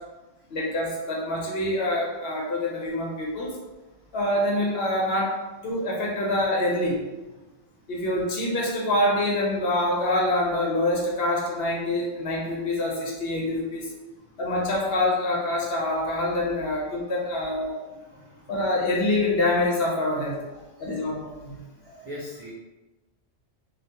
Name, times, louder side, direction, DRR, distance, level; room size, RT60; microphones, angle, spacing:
voice 1, 0.5-3.5 4.1-5.3 5.6-7.0 7.9-13.9 14.4-17.8 18.5-20.4 20.8-21.6, left 1 dB, 60° left, -3 dB, 0.7 m, -25 dB
voice 2, 17.9-18.6 20.5-21.0 21.5-22.5, left 1 dB, 50° right, -9 dB, 0.4 m, -44 dB
2.3 x 2.1 x 2.6 m, 1.1 s
omnidirectional pair, 1.2 m